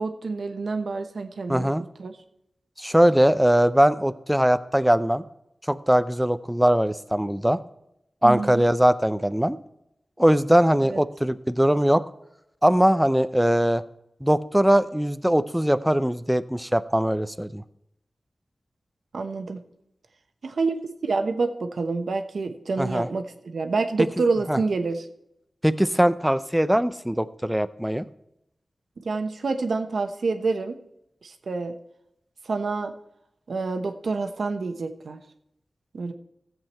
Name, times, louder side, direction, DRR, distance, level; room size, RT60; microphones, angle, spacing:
voice 1, 0.0-1.7 2.0-2.1 8.2-8.6 10.8-11.0 19.1-19.6 20.4-25.1 29.0-30.8 31.2-31.8 32.4-32.9 33.5-35.2 35.9-36.1, right 3 dB, 80° right, 7 dB, 1.1 m, -27 dB
voice 2, 1.5-1.8 2.8-5.2 5.7-7.6 8.2-9.6 10.2-12.0 12.6-13.8 14.2-17.6 22.8-23.1 24.5-24.6 25.6-28.0, equal, 5° right, 13 dB, 0.5 m, -21 dB
15.0 x 7.8 x 4.4 m, 0.82 s
wide cardioid pair, 80°, 0 cm